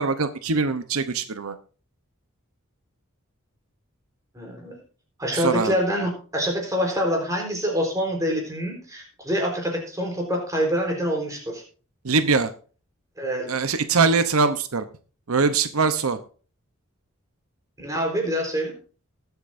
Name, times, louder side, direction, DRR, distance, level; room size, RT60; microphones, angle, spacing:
voice 1, 0.0-1.6 5.3-5.7 12.0-12.5 13.5-14.8 15.3-16.2, right 4 dB, 90° right, 11 dB, 0.9 m, -22 dB
voice 2, 4.3-4.8 5.2-11.6 13.2-13.5 17.8-18.7, equal, 15° right, 1 dB, 4.0 m, -26 dB
19.5 x 8.3 x 2.6 m, 0.39 s
head